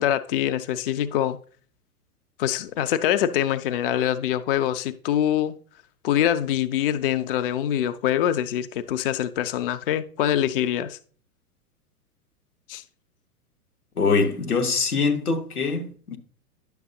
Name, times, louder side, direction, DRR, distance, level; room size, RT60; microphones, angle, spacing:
voice 1, 0.0-1.4 2.4-5.6 6.0-11.0 12.7-12.8, left 11 dB, 40° left, 0.4 m, -24 dB
voice 2, 14.0-16.2, left 4 dB, 75° left, 1.3 m, -23 dB
10.5 x 6.7 x 2.7 m
figure-of-eight pair, 100°, 45 cm